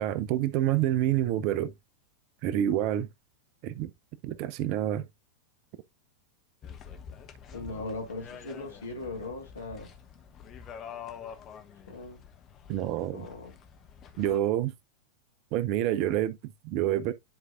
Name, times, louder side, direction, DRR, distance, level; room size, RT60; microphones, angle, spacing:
voice 1, 0.0-1.7 2.4-3.1 3.6-3.9 4.2-5.0 12.7-13.3 14.2-14.7 15.5-17.1, right 12 dB, 45° right, 0.6 m, -27 dB
sound 1, 6.6-14.4, left 7 dB, 30° left, 1.1 m, -47 dB
voice 2, 7.5-9.9 11.9-12.2 13.1-13.5, left 2 dB, 70° left, 2.1 m, -39 dB
10.5 x 4.6 x 2.5 m
figure-of-eight pair, 90°, 0 cm